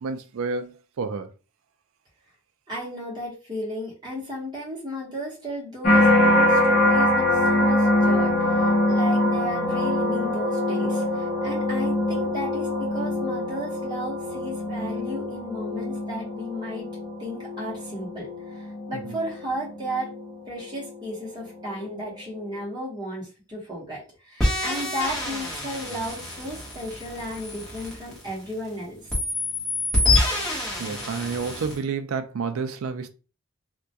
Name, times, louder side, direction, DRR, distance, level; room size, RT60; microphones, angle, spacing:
voice 1, 0.0-1.3 19.1-19.2 30.8-33.1, right 5 dB, 80° right, 0.4 m, -30 dB
voice 2, 2.7-12.7 12.9-16.9 17.2-18.3 18.9-20.1 20.5-29.0, equal, 20° right, 0.9 m, -34 dB
sound 1, 5.8-21.0 21.6-22.0, left 1 dB, 40° left, 0.5 m, -24 dB
sound 2, 24.4-28.7 29.1-31.8, left 2 dB, 5° left, 0.8 m, -27 dB
2.2 x 2.2 x 2.7 m
head